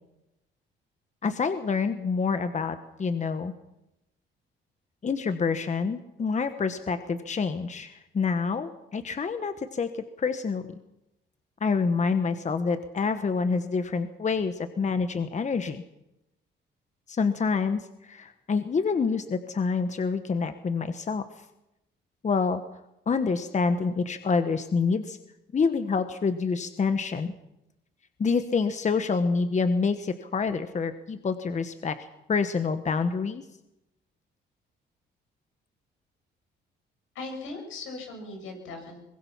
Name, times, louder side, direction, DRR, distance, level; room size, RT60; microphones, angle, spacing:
voice 1, 1.2-3.5 5.0-9.9 10.2-10.7 11.6-15.8 17.1-21.2 22.2-22.6 23.1-25.2 25.5-27.3 28.2-33.4, left 5 dB, 35° left, 9 dB, 1.3 m, -27 dB
voice 2, 37.1-39.0, left 3 dB, 85° left, 3 dB, 7.1 m, -38 dB
23.5 x 20.5 x 5.8 m, 0.88 s
cardioid pair, 90°, 20 cm